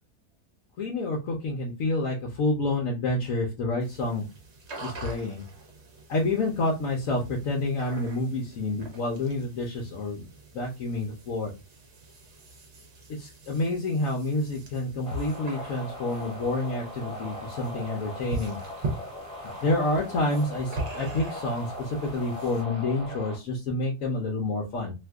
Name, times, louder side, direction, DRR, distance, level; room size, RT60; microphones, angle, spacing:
voice 1, 0.8-4.3 4.8-5.4 6.1-10.3 10.5-11.5 13.2-18.6 19.6-24.9, left 2 dB, 65° left, -1 dB, 1.0 m, -28 dB
sound 1, 3.8-22.6, right 3 dB, 50° right, 1.0 m, -42 dB
sound 2, 15.0-23.4, left 1 dB, 5° left, 1.0 m, -39 dB
2.8 x 2.5 x 3.4 m, 0.27 s
omnidirectional pair, 1.7 m